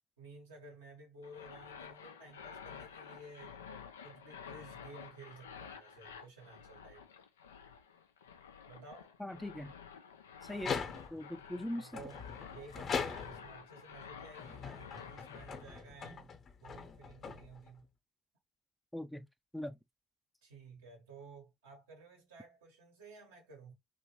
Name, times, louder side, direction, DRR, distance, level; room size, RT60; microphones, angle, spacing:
voice 1, 0.2-3.6 4.0-7.1 8.7-9.2 11.4-12.2 12.5-16.3 16.6-17.9 20.4-23.7, right 3 dB, 85° right, 1.2 m, -54 dB
sound 1, 1.2-15.6, left 7 dB, 85° left, 0.3 m, -51 dB
voice 2, 9.2-9.7 10.4-10.8 11.1-11.9 18.9-19.3 19.5-19.8, left 1 dB, 5° left, 0.4 m, -40 dB
sound 2, 10.5-11.3 11.9-13.6 14.3-17.8, left 6 dB, 45° left, 0.8 m, -41 dB
2.9 x 2.5 x 2.8 m
hypercardioid pair, 55°, 0 cm